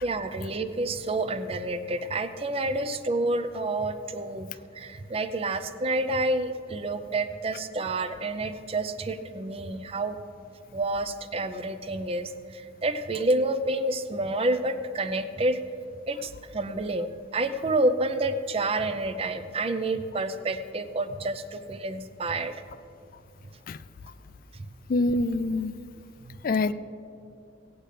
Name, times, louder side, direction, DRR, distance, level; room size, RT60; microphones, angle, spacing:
voice 1, 0.0-10.2 10.7-15.6 16.1-22.6 23.4-23.5 24.5-24.7 26.2-26.4, right 2 dB, 30° right, 0.5 m, -29 dB
voice 2, 24.9-25.7 26.4-26.7, left 2 dB, 45° left, 0.3 m, -25 dB
17.5 x 8.8 x 3.3 m
head